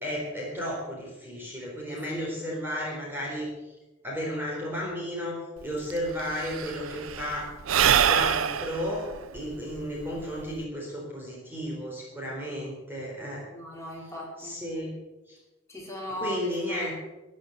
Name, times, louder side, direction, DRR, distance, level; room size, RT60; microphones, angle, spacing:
voice 1, 0.0-3.7 4.0-7.5 7.9-9.1 9.3-13.5 14.4-14.9 15.3-15.4 16.2-16.9, equal, 10° right, -3 dB, 4.2 m, -33 dB
voice 2, 1.9-2.3 13.2-14.6 15.7-16.4 16.7-16.9, left 1 dB, 15° left, -4 dB, 5.0 m, -39 dB
Sigh / Breathing, 5.6-5.7 5.9-10.6, right 8 dB, 85° right, 0.6 m, -26 dB
13.5 x 11.5 x 8.1 m, 1.1 s
head